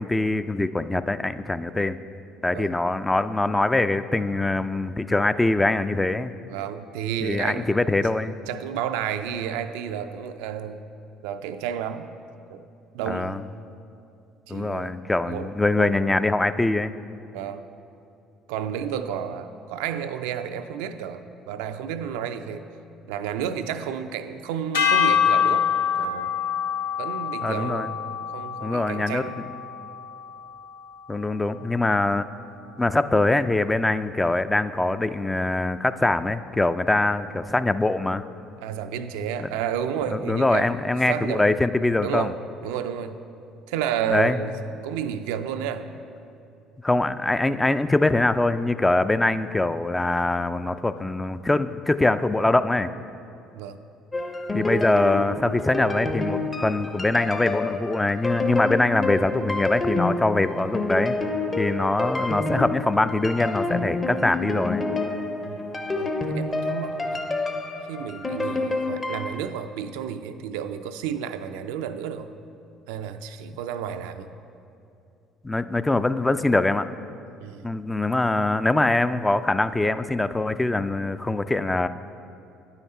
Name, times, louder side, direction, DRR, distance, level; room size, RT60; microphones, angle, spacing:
voice 1, 0.0-2.0 2.4-6.3 7.2-8.3 13.1-13.4 14.5-16.9 27.4-27.9 28.6-29.2 31.1-32.3 32.8-38.2 39.4-39.5 40.1-42.3 44.1-44.4 46.8-52.9 54.5-61.2 61.6-64.8 75.4-76.9 77.6-81.9, left 2 dB, 15° left, 12 dB, 0.3 m, -23 dB
voice 2, 6.5-7.7 8.5-10.8 11.2-12.2 12.5-12.6 12.9-13.5 14.5-15.0 15.3-15.5 15.8-16.0 17.3-17.6 18.5-22.7 23.1-25.7 26.0-26.3 27.0-27.9 28.3-29.4 38.6-40.8 41.1-41.4 42.0-42.3 42.6-43.2 43.7-45.9 53.5-53.8 65.4-65.6 66.0-67.2 67.9-72.3 72.9-74.3 77.4-77.6, right 8 dB, 80° right, 9 dB, 0.3 m, -31 dB
sound 1, 24.7-31.1, left 8 dB, 90° left, 0.6 m, -26 dB
sound 2, 54.1-69.4, left 2 dB, 30° left, 0.8 m, -28 dB
9.2 x 5.7 x 4.2 m, 2.6 s
hypercardioid pair, 65°, 0 cm